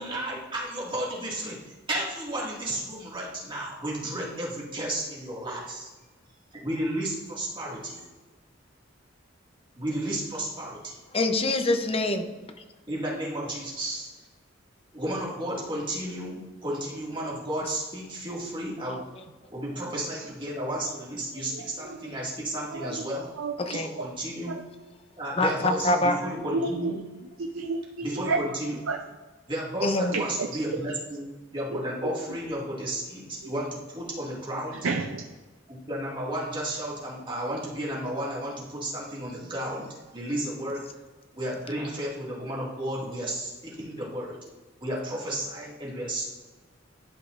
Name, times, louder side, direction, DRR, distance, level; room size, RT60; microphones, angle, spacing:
voice 1, 0.0-5.8 6.5-8.1 9.8-11.0 12.9-14.1 14.9-19.1 19.5-23.3 23.7-24.6 25.2-27.0 28.0-28.8 29.5-31.3 31.5-34.8 35.7-40.8 41.3-44.4 44.8-46.3, right 1 dB, 25° right, -4 dB, 1.9 m, -33 dB
voice 2, 11.1-12.3 18.9-19.0 23.6-23.9 25.4-26.2 29.8-30.1, left 2 dB, 30° left, 7 dB, 0.6 m, -25 dB
voice 3, 21.5-22.1 22.7-23.1 23.4-24.1 24.5-24.6 26.2-26.9 27.4-28.6 28.9-29.1 30.1-30.6 31.7-32.2 34.7-35.3, right 3 dB, 90° right, 4 dB, 0.5 m, -32 dB
12.0 x 5.0 x 2.5 m, 1.3 s
head